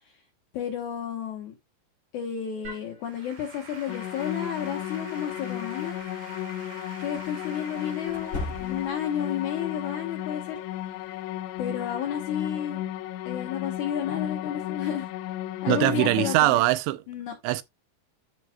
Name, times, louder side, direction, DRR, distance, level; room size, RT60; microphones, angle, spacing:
voice 1, 0.5-1.5 2.1-6.0 7.0-10.6 11.6-12.8 13.3-15.1 15.6-16.6 17.1-17.3, left 9 dB, 70° left, 1.9 m, -32 dB
Applause / Keyboard (musical), 2.7-12.0, right 3 dB, 70° right, 6.3 m, -47 dB
sound 1, 3.9-16.4, left 13 dB, 90° left, 2.8 m, -34 dB
sound 2, 5.9-6.0 8.1-9.1, left 2 dB, 45° left, 3.4 m, -36 dB
voice 2, 15.7-17.0 17.4-17.6, right 16 dB, 90° right, 2.8 m, -22 dB
13.0 x 4.6 x 2.2 m
omnidirectional pair, 4.9 m